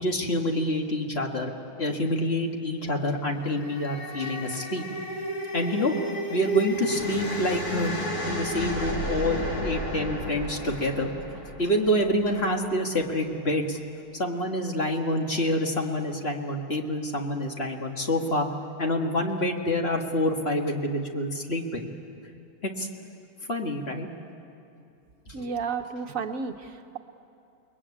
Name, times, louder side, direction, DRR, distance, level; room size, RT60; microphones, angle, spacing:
voice 1, 0.0-1.5 1.8-4.8 5.5-5.9 6.3-7.9 8.3-11.1 11.6-13.8 14.1-18.5 18.8-21.9 22.8-22.9 23.5-24.1 25.3-25.4, left 1 dB, 40° left, 2 dB, 2.0 m, -27 dB
sound 1, 3.3-12.6, equal, 75° left, 3.6 m, -33 dB
voice 2, 25.3-27.0, right 5 dB, 60° right, 6 dB, 1.4 m, -32 dB
29.5 x 21.5 x 8.6 m, 2.7 s
omnidirectional pair, 1.6 m